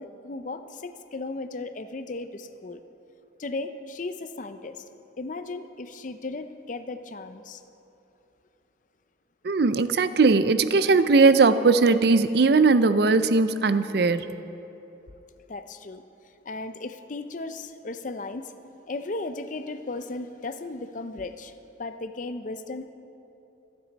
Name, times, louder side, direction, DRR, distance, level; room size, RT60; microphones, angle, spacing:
voice 1, 0.0-2.8 3.4-4.9 5.2-7.6 15.5-16.0 16.4-18.5 18.9-21.5 21.8-22.9, left 3 dB, 45° left, 10 dB, 0.5 m, -35 dB
voice 2, 9.4-14.3, right 4 dB, 60° right, 12 dB, 0.5 m, -19 dB
26.5 x 9.0 x 4.1 m, 2.9 s
head